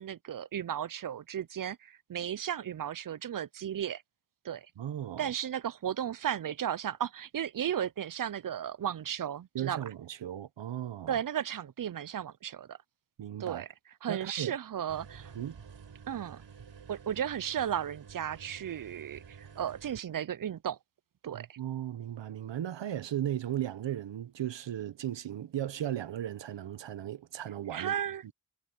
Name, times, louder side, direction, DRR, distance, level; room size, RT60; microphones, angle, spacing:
voice 1, 0.0-4.0 4.4-4.7 5.2-9.8 11.1-12.8 13.4-13.7 14.0-15.3 16.1-16.4 16.9-20.8 21.2-21.5 27.7-28.2, right 9 dB, 50° right, 0.6 m, -35 dB
voice 2, 4.8-5.3 9.5-11.2 13.2-13.6 14.1-14.6 15.3-15.6 21.3-28.0, right 11 dB, 90° right, 0.9 m, -36 dB
sound 1, 14.9-20.0, right 6 dB, 75° right, 5.7 m, -50 dB
cardioid pair, 55°, 43 cm